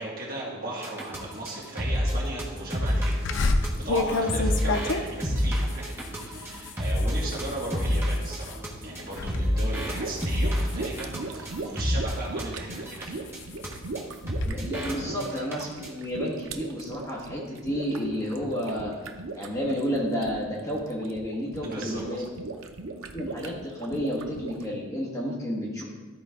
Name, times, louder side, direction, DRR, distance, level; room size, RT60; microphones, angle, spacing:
voice 1, 0.0-3.4 3.8-11.1 11.4-13.2 14.8-15.2 21.6-22.2, right 1 dB, 45° right, -4 dB, 1.9 m, -37 dB
sound 1, 0.8-12.4 12.7-13.0 13.3-13.4 13.6-13.7 13.9-14.0 14.3-14.9 15.2-15.5 15.8-15.9, equal, 10° right, 1.2 m, -28 dB
sound 2, 3.2-8.6 9.0-9.4 9.8-11.8 12.3-14.5, left 3 dB, 55° left, 0.5 m, -31 dB
sound 3, 9.9-24.6, right 3 dB, 70° right, 0.6 m, -38 dB
voice 2, 14.4-18.9 19.3-22.2 23.0-25.8, equal, 15° left, -5 dB, 1.5 m, -31 dB
13.0 x 4.5 x 3.6 m, 1.4 s
head